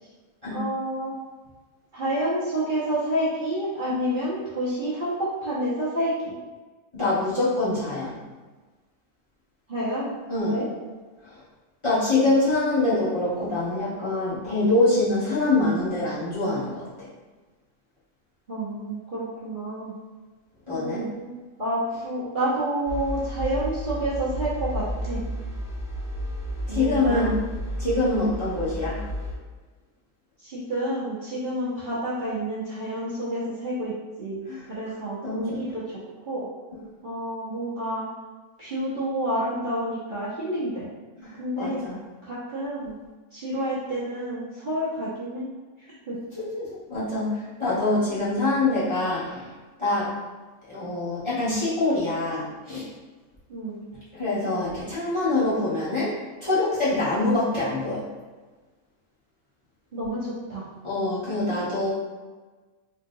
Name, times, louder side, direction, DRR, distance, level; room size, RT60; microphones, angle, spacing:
voice 1, 0.5-1.1 1.9-6.3 9.7-10.1 10.4-10.7 18.5-19.9 20.7-21.3 21.6-25.2 26.7-27.4 30.4-33.9 34.2-36.0 36.2-36.5 37.0-38.1 38.6-40.9 41.4-41.8 42.2-43.0 43.3-45.5 45.8-46.2 53.5-53.9 59.9-60.6, right 1 dB, 40° right, -10 dB, 1.1 m, -29 dB
voice 2, 6.9-8.2 10.3-10.5 11.8-17.1 20.7-21.1 26.7-27.3 27.8-29.0 34.5-34.6 35.2-35.6 41.2-42.0 46.4-49.5 49.8-50.1 50.7-52.9 54.1-56.1 56.4-58.0 60.8-61.9, left 2 dB, 20° left, -11 dB, 1.3 m, -25 dB
sound 1, 22.9-29.3, equal, 5° right, 0.8 m, -32 dB
3.8 x 3.6 x 2.7 m, 1.3 s
omnidirectional pair, 1.4 m